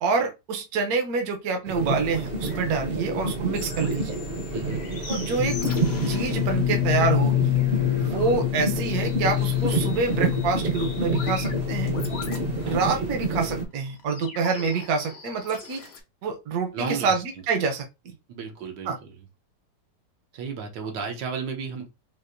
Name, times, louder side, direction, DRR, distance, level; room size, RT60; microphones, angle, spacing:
voice 1, 0.0-4.2 5.1-5.6 6.1-7.6 7.9-11.9 12.6-15.8 16.2-17.9 18.9-19.0, right 4 dB, 65° right, 1.1 m, -27 dB
sound 1, 1.7-13.6, right 3 dB, 45° right, 0.8 m, -29 dB
sound 2, 1.9-16.0, left 4 dB, 50° left, 0.8 m, -43 dB
sound 3, 5.4-12.9, left 13 dB, 80° left, 1.2 m, -27 dB
voice 2, 12.6-13.0 16.7-17.2 18.3-18.9 19.2-19.3 20.3-21.9, right 5 dB, 80° right, 1.5 m, -33 dB
4.6 x 2.5 x 2.5 m
omnidirectional pair, 1.9 m